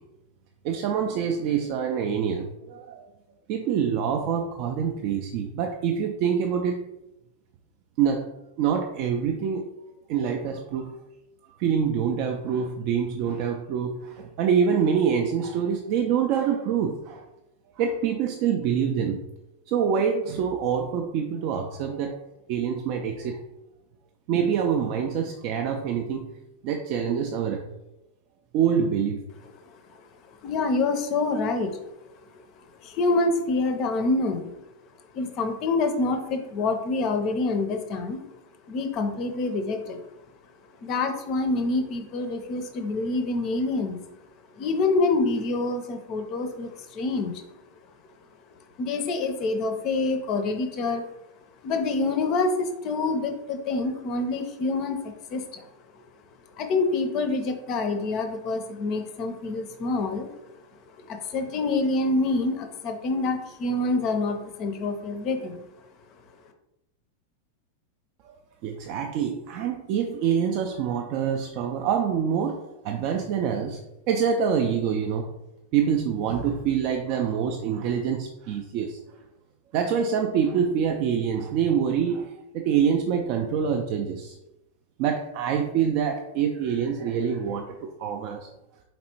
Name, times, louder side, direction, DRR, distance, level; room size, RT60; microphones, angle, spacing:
voice 1, 0.6-3.0 3.5-6.8 8.0-8.3 8.6-9.6 10.1-11.0 11.6-17.2 17.8-19.2 19.7-22.2 22.5-23.4 24.3-26.3 26.6-27.6 28.5-29.2 68.2-68.4 68.6-73.8 74.1-75.3 75.7-79.0 79.7-84.3 85.0-88.5, right 7 dB, 45° right, 3 dB, 0.3 m, -26 dB
voice 2, 30.4-31.8 32.8-34.5 35.1-38.2 38.7-40.0 40.8-44.0 44.6-47.4 48.8-51.0 51.6-55.7 56.6-60.4 61.0-65.7, left 3 dB, 40° left, 6 dB, 0.5 m, -26 dB
4.2 x 3.3 x 2.8 m, 0.90 s
figure-of-eight pair, 90°, 0 cm